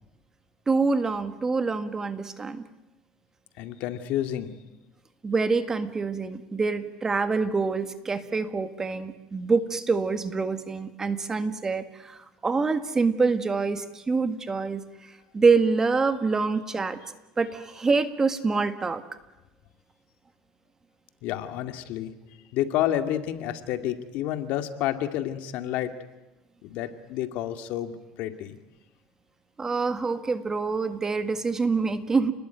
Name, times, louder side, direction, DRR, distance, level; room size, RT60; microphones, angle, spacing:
voice 1, 0.7-2.6 5.2-14.8 15.3-17.0 17.4-19.0 29.6-32.3, right 4 dB, 20° right, 10 dB, 1.7 m, -26 dB
voice 2, 3.6-4.5 21.2-22.1 22.5-25.9 26.6-27.9 28.2-28.6, left 12 dB, 65° left, 8 dB, 2.2 m, -29 dB
30.0 x 20.5 x 9.3 m, 1.0 s
cardioid pair, 130°, 3 cm